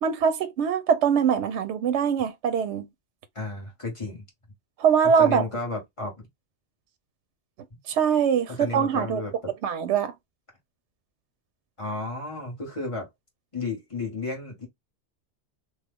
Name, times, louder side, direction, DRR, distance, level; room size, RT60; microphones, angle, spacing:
voice 1, 0.0-2.9 4.8-5.4 7.9-9.2 9.6-10.1, right 7 dB, 90° right, 0.9 m, -23 dB
voice 2, 3.3-4.2 5.0-6.1 8.5-9.5 11.8-13.1 13.5-14.7, left 3 dB, 30° left, 1.3 m, -33 dB
2.9 x 2.3 x 3.5 m
omnidirectional pair, 1.1 m